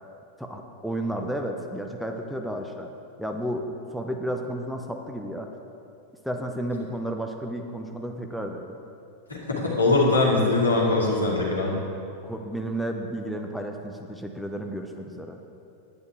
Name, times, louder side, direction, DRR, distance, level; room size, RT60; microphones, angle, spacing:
voice 1, 0.4-2.9 3.2-5.5 6.2-8.7 12.3-15.4, right 1 dB, ahead, 3 dB, 0.7 m, -32 dB
voice 2, 9.6-11.7, left 2 dB, 80° left, -3 dB, 2.1 m, -21 dB
9.7 x 9.5 x 4.5 m, 2.7 s
figure-of-eight pair, 90°, 0 cm